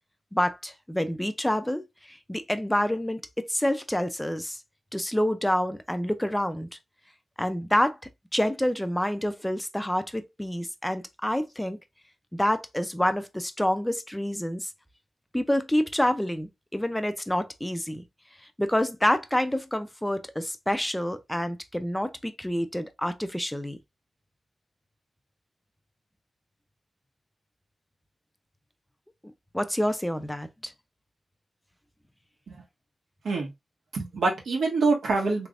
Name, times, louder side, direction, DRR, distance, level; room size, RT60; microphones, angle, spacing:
voice 1, 0.3-4.6 4.9-6.7 7.4-8.0 8.3-11.8 12.3-14.7 15.3-18.0 18.6-23.8 29.2-30.7, left 1 dB, 5° left, 0.5 m, -28 dB
voice 2, 33.9-35.5, right 3 dB, 80° right, 1.5 m, -25 dB
3.3 x 3.3 x 2.5 m
wide cardioid pair, 105°, 0 cm